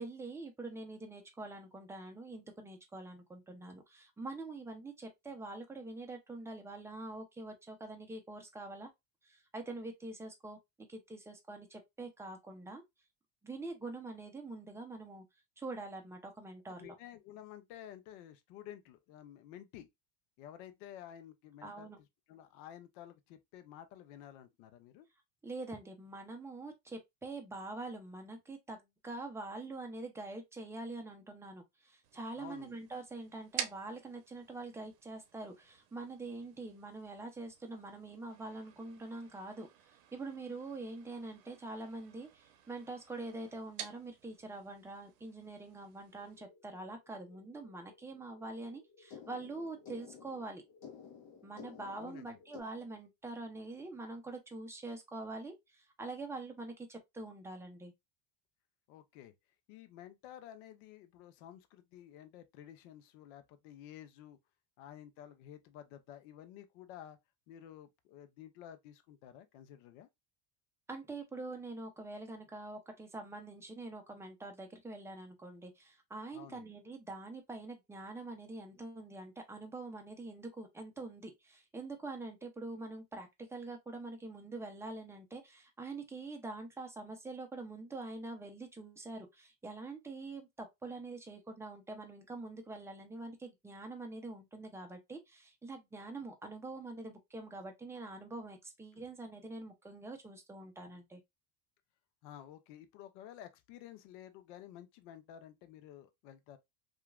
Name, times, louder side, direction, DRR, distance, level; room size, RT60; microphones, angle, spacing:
voice 1, 0.0-8.9 9.2-12.8 13.4-15.2 15.6-16.9 21.6-22.0 25.4-50.6 51.4-57.9 70.9-101.2, right 2 dB, 5° right, 0.5 m, -45 dB
voice 2, 16.8-19.9 20.4-21.9 22.3-25.1 32.4-32.7 52.0-52.4 58.9-59.3 59.7-64.4 64.8-67.2 67.5-70.1 76.3-76.7 98.9-99.0 102.2-106.6, left 11 dB, 65° left, 0.6 m, -52 dB
sound 1, 32.0-46.4, right 9 dB, 70° right, 0.7 m, -50 dB
sound 2, 46.1-52.6, left 7 dB, 45° left, 0.9 m, -55 dB
2.8 x 2.4 x 2.3 m
supercardioid pair, 105°, 47 cm